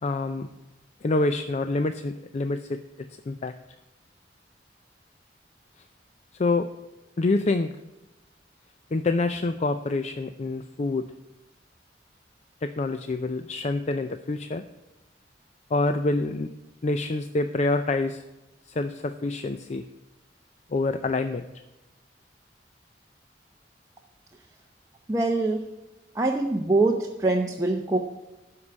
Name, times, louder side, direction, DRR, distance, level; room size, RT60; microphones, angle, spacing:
voice 1, 0.0-0.5 1.0-2.8 3.3-3.5 6.4-6.7 7.2-7.7 8.9-11.1 12.6-14.6 15.7-16.5 16.8-18.2 18.7-19.9 20.7-21.5, left 2 dB, 40° left, 9 dB, 0.4 m, -26 dB
voice 2, 25.1-25.6 26.1-28.0, right 2 dB, 20° right, 0 dB, 0.8 m, -23 dB
12.5 x 4.8 x 8.4 m, 1.0 s
head